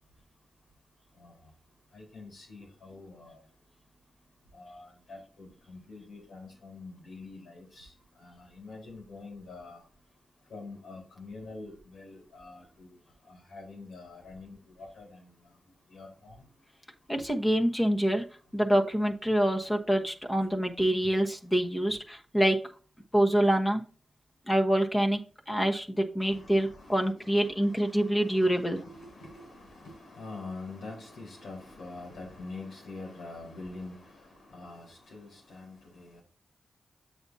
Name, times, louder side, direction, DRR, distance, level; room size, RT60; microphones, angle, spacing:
voice 1, 1.9-3.4 4.5-9.8 10.5-13.0 13.3-15.3 15.9-16.4 17.2-17.3 21.0-21.1 26.2-36.2, left 3 dB, 85° left, 4.3 m, -46 dB
voice 2, 17.1-18.2 18.5-22.6 23.1-23.8 24.5-25.2 25.5-28.8, right 1 dB, 15° left, 1.2 m, -26 dB
8.0 x 6.9 x 2.8 m
cardioid pair, 60°, 0 cm